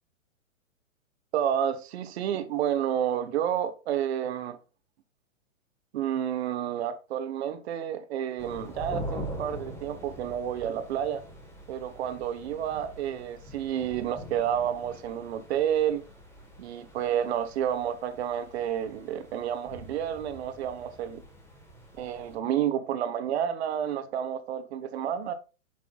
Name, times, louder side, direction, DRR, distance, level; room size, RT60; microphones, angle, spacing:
voice 1, 1.3-4.6 5.9-11.2 11.7-16.0 16.6-21.2 21.9-25.3, right 9 dB, 50° right, 1.0 m, -30 dB
sound 1, 8.4-22.4, equal, 5° left, 1.2 m, -43 dB
8.6 x 6.1 x 2.3 m
hypercardioid pair, 145°, 41 cm